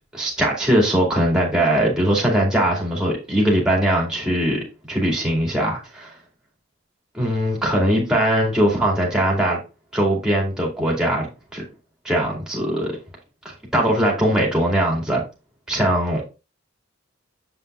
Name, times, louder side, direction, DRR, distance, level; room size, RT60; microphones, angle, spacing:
voice 1, 0.1-6.1 7.1-9.6 9.9-11.6 12.0-12.9 13.7-15.2 15.7-16.2, right 1 dB, 5° right, 2.3 m, -20 dB
7.3 x 5.7 x 2.5 m
head